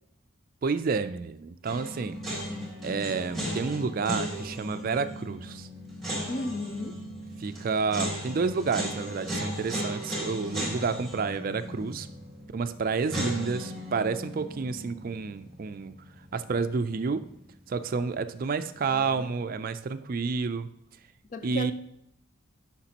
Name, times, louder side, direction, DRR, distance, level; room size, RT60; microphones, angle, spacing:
voice 1, 0.6-2.2 2.8-5.7 7.4-12.1 12.5-16.0 16.3-17.3 17.7-20.7 21.4-21.7, right 4 dB, 45° right, 0.4 m, -30 dB
sound 1, 1.7-16.7 16.9-17.0 18.8-19.3, equal, ahead, 2.3 m, -36 dB
voice 2, 6.3-7.0 21.3-21.7, left 1 dB, 40° left, 0.4 m, -33 dB
10.0 x 5.8 x 2.9 m
head